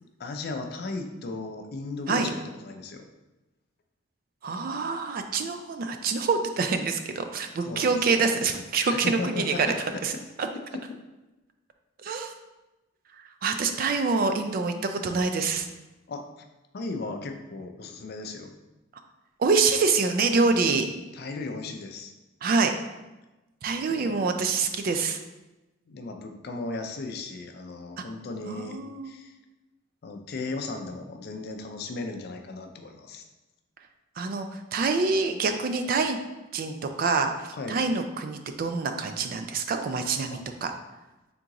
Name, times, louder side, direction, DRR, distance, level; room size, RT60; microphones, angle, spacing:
voice 1, 0.0-3.1 7.6-8.2 8.8-10.0 10.7-10.8 16.1-16.2 16.7-18.5 21.1-22.1 23.9-24.2 25.9-28.8 29.0-29.3 30.0-33.2 37.5-37.8 40.3-40.4, left 3 dB, 50° left, 5 dB, 0.4 m, -36 dB
voice 2, 4.4-9.7 10.0-10.1 10.4-10.5 12.0-12.3 13.4-15.7 19.4-20.9 22.4-22.7 23.6-25.2 28.5-29.1 34.2-36.2 36.5-40.7, right 4 dB, 45° right, 7 dB, 0.3 m, -26 dB
3.7 x 3.6 x 2.9 m, 1.1 s
head